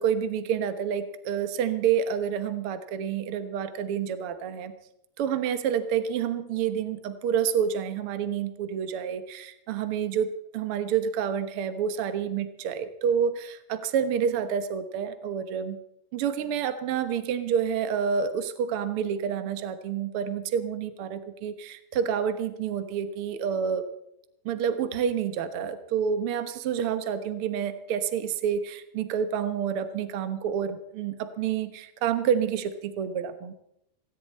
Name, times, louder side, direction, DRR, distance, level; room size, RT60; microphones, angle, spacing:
voice 1, 0.0-4.7 5.2-15.8 16.1-23.9 24.4-33.5, right 8 dB, 70° right, 10 dB, 1.3 m, -28 dB
18.0 x 17.0 x 4.2 m, 0.76 s
omnidirectional pair, 4.4 m